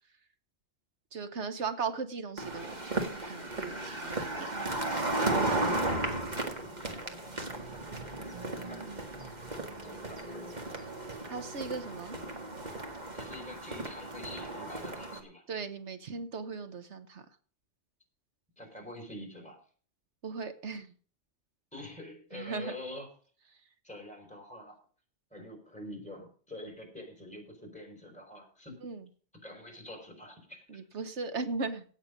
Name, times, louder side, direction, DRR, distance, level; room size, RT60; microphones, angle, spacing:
voice 1, 1.1-4.5 11.3-12.1 15.5-17.2 20.2-20.9 22.3-22.8 28.8-29.1 30.7-31.8, right 4 dB, 85° right, 10 dB, 1.5 m, -37 dB
sound 1, 2.4-15.2, right 2 dB, 40° right, 2.1 m, -35 dB
voice 2, 6.9-8.4 8.7-9.6 9.8-10.6 13.1-15.4 18.6-19.6 21.7-23.1 23.8-24.8 25.3-28.7 29.4-30.6, left 1 dB, 5° left, 2 dB, 5.2 m, -46 dB
17.0 x 7.4 x 5.2 m, 0.43 s
omnidirectional pair, 1.1 m